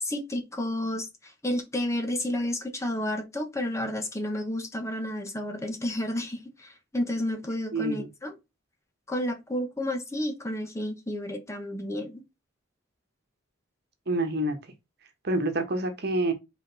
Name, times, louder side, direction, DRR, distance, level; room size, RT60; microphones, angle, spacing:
voice 1, 0.0-8.3 9.1-12.2, left 1 dB, 15° left, 1.2 m, -31 dB
voice 2, 7.7-8.1 14.1-14.6 15.2-16.3, right 1 dB, 55° right, 1.4 m, -27 dB
5.1 x 4.5 x 4.0 m
head